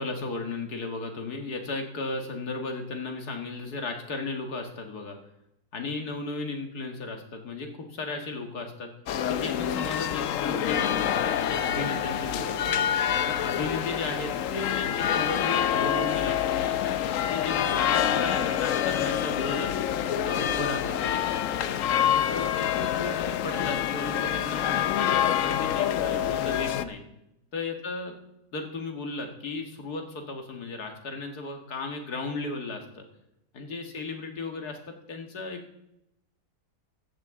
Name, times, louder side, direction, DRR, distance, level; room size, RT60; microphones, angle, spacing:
voice 1, 0.0-5.2 5.7-8.9 9.3-12.7 13.3-19.7 20.2-21.7 22.1-27.0 27.5-28.1 28.5-33.1 33.5-35.8, left 3 dB, 85° left, 4 dB, 2.2 m, -35 dB
sound 1, 9.1-26.8, left 10 dB, 65° left, 0.9 m, -27 dB
15.0 x 14.0 x 3.7 m, 0.85 s
omnidirectional pair, 1.6 m